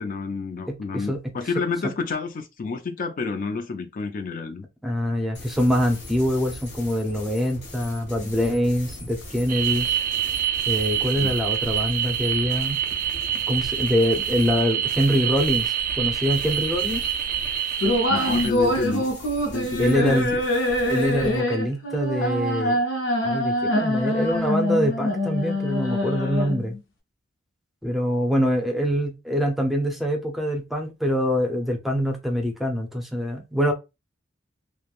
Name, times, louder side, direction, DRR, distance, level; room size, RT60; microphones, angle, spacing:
voice 1, 0.0-4.6 11.1-11.4 18.1-19.1 19.5-20.4, left 4 dB, 45° left, 0.4 m, -29 dB
voice 2, 0.7-1.2 4.8-9.9 10.7-12.8 13.5-17.0 19.8-20.3 20.9-22.8 23.2-26.8 27.8-33.7, equal, ahead, 0.6 m, -24 dB
sound 1, 5.3-21.4, left 1 dB, 60° left, 1.2 m, -40 dB
sound 2, 9.5-18.5, right 9 dB, 45° right, 0.3 m, -26 dB
sound 3, 17.8-26.8, left 1 dB, 80° left, 0.6 m, -24 dB
3.1 x 2.0 x 2.4 m
head